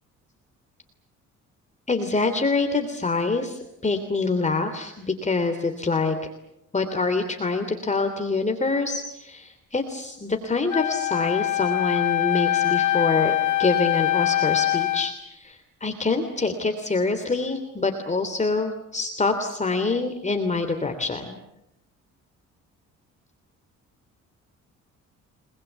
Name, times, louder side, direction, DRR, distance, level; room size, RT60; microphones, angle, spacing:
voice 1, 1.9-6.2 6.7-13.3 13.6-21.4, left 3 dB, 25° left, 6 dB, 3.1 m, -25 dB
Wind instrument woodwind instrument, 10.7-15.2, left 14 dB, 75° left, 2.4 m, -23 dB
30.0 x 20.5 x 8.2 m, 0.87 s
cardioid pair, 90°, 30 cm